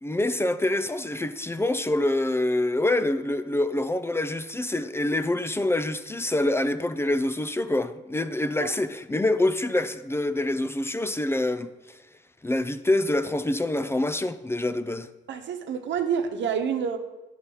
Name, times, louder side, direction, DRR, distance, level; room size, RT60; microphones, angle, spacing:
voice 1, 0.0-11.7 12.4-15.1, left 1 dB, 10° left, 0.4 m, -26 dB
voice 2, 15.3-17.0, right 7 dB, 65° right, 1.0 m, -28 dB
10.5 x 4.1 x 6.9 m
cardioid pair, 90°, 20 cm